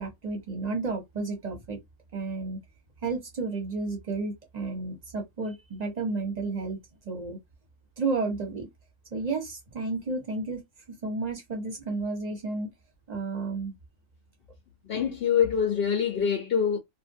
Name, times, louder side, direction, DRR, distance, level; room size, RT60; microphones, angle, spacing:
voice 1, 0.0-1.8 2.1-2.6 3.0-6.8 7.0-7.4 8.0-8.7 9.1-10.6 10.9-12.7 13.1-13.7, right 3 dB, 30° right, 0.9 m, -32 dB
voice 2, 14.8-16.8, left 7 dB, 55° left, 0.6 m, -25 dB
2.6 x 2.5 x 2.6 m
omnidirectional pair, 1.6 m